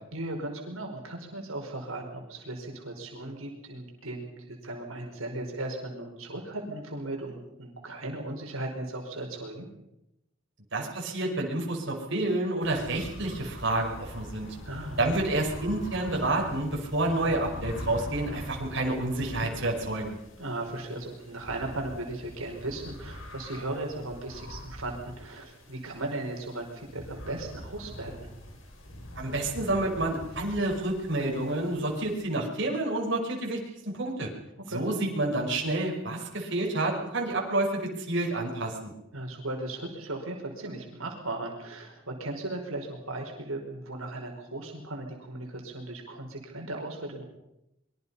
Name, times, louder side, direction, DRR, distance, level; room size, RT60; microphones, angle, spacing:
voice 1, 0.1-9.7 14.6-15.0 20.4-28.3 34.7-34.8 39.1-47.2, right 2 dB, 85° right, 1 dB, 5.0 m, -37 dB
voice 2, 10.7-14.6 15.0-20.2 29.2-33.6 33.8-34.3 34.7-38.9, right 2 dB, 60° right, -1 dB, 5.5 m, -29 dB
sound 1, 12.6-32.2, equal, 70° left, 6.0 m, -43 dB
24.5 x 23.0 x 5.6 m, 0.87 s
head